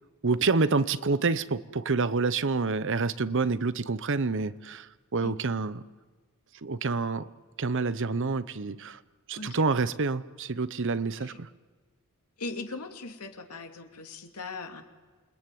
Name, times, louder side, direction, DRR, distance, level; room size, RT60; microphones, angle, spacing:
voice 1, 0.2-5.8 6.6-7.3 7.6-9.0 9.3-11.5, right 4 dB, 55° right, 15 dB, 0.8 m, -28 dB
voice 2, 9.3-9.7 11.2-11.4 12.4-14.8, left 3 dB, 90° left, 4 dB, 2.7 m, -39 dB
28.5 x 20.5 x 9.3 m, 1.4 s
head